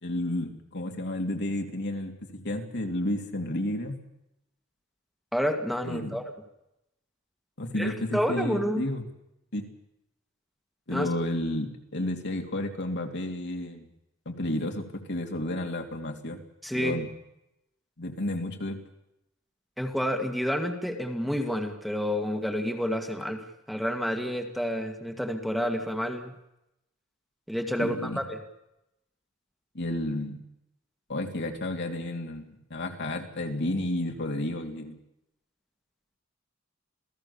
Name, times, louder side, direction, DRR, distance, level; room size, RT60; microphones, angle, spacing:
voice 1, 0.0-4.0 5.8-6.2 7.6-9.1 9.5-9.7 10.9-13.9 14.2-16.4 16.7-17.1 18.0-18.8 27.8-28.2 29.7-30.4 31.1-35.0, left 1 dB, 60° left, 3 dB, 3.1 m, -31 dB
voice 2, 5.3-6.3 7.8-8.8 10.9-11.1 16.6-17.0 19.8-26.3 27.5-28.4, equal, ahead, 4 dB, 2.1 m, -29 dB
27.5 x 17.5 x 7.2 m, 0.86 s
head